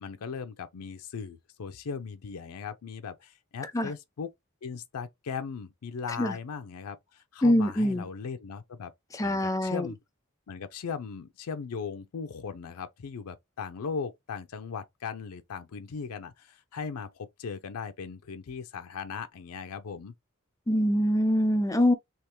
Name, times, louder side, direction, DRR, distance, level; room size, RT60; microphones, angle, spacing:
voice 1, 0.0-4.3 4.6-8.9 9.2-10.0 10.5-20.1, left 5 dB, 85° left, 0.5 m, -38 dB
voice 2, 7.4-8.1 9.1-9.9 20.7-21.9, left 1 dB, 15° left, 0.4 m, -24 dB
3.4 x 2.9 x 2.9 m
head